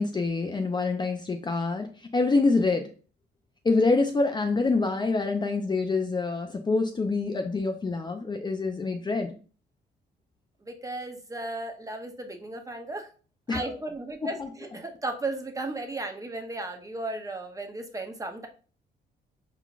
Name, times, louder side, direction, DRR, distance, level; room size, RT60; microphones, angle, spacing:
voice 1, 0.0-1.9 2.1-2.9 3.6-9.4 14.2-14.5, left 3 dB, 20° left, 4 dB, 0.5 m, -26 dB
voice 2, 10.6-13.1 13.5-18.5, right 2 dB, 15° right, 4 dB, 0.8 m, -35 dB
4.6 x 3.7 x 2.4 m, 0.38 s
cardioid pair, 90°, 20 cm